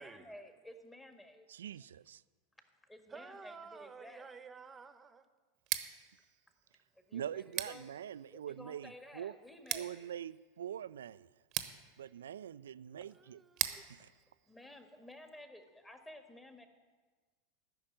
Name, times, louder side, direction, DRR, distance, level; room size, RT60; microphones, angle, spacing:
voice 1, 0.0-1.5 2.9-4.3 7.0-7.9 8.3-10.1 14.0-14.1 14.5-16.7, left 1 dB, 10° left, 6 dB, 1.8 m, -53 dB
voice 2, 1.5-2.2 7.1-9.3 9.7-11.3 12.0-13.4, right 10 dB, 70° right, 17 dB, 0.3 m, -44 dB
voice 3, 3.1-5.2 13.1-13.8, right 5 dB, 20° right, 10 dB, 1.1 m, -52 dB
Scissors, 5.5-15.4, right 15 dB, 45° right, 0.9 m, -44 dB
14.0 x 6.5 x 9.0 m, 1.4 s
figure-of-eight pair, 85°, 0 cm